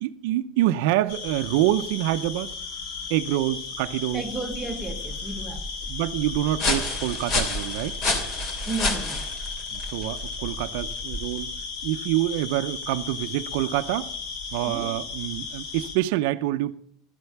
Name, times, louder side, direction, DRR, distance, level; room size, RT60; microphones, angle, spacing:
voice 1, 0.0-2.6 3.1-4.3 5.9-8.0 9.7-11.5 11.8-14.1 14.5-16.8, right 15 dB, 65° right, 0.6 m, -26 dB
sound 1, 1.1-16.0, left 5 dB, 60° left, 5.5 m, -35 dB
voice 2, 4.1-5.7 8.7-9.2 14.6-15.0, right 3 dB, 10° right, 1.1 m, -33 dB
sound 2, 4.2-11.6, left 2 dB, 35° left, 2.8 m, -30 dB
13.0 x 8.0 x 7.1 m
cardioid pair, 170°, 0 cm